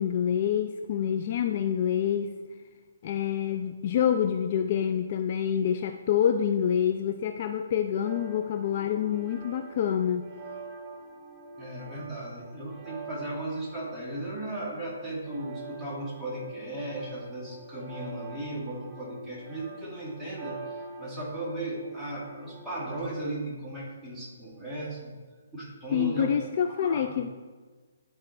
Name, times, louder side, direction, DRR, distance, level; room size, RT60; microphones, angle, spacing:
voice 1, 0.0-2.3 3.0-10.3 25.9-27.3, left 9 dB, 45° left, 7 dB, 0.3 m, -27 dB
sound 1, 8.0-23.0, right 3 dB, 10° right, 0.9 m, -44 dB
voice 2, 11.6-25.1 25.5-26.3 26.8-27.2, right 1 dB, 5° left, -8 dB, 2.0 m, -36 dB
11.0 x 4.2 x 3.3 m, 1.4 s
hypercardioid pair, 150°, 0 cm